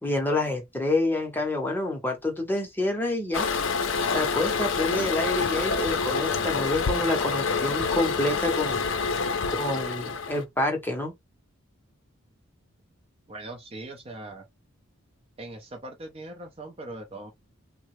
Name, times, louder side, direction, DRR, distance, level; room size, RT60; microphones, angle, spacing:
voice 1, 0.0-3.5 4.1-8.8 9.5-11.1, left 2 dB, 10° left, 0.7 m, -28 dB
Toilet flush, 3.3-10.4, left 5 dB, 65° left, 0.5 m, -27 dB
voice 2, 13.3-14.5 15.4-17.3, right 2 dB, 30° right, 0.4 m, -40 dB
3.2 x 2.0 x 3.0 m
head